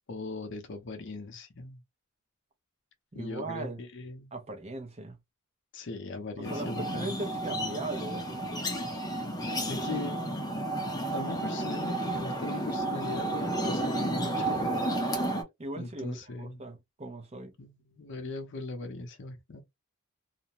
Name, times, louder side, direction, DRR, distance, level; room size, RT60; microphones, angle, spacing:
voice 1, 0.1-1.8 3.1-4.3 5.7-7.1 9.7-10.3 11.1-14.9 15.8-16.6 17.6-19.6, left 3 dB, 55° left, 0.6 m, -39 dB
voice 2, 3.1-3.8 4.3-5.2 6.4-8.7 15.6-17.5, right 2 dB, 30° right, 0.6 m, -39 dB
sound 1, 6.4-15.4, right 1 dB, 15° left, 0.6 m, -32 dB
2.4 x 2.1 x 2.8 m
head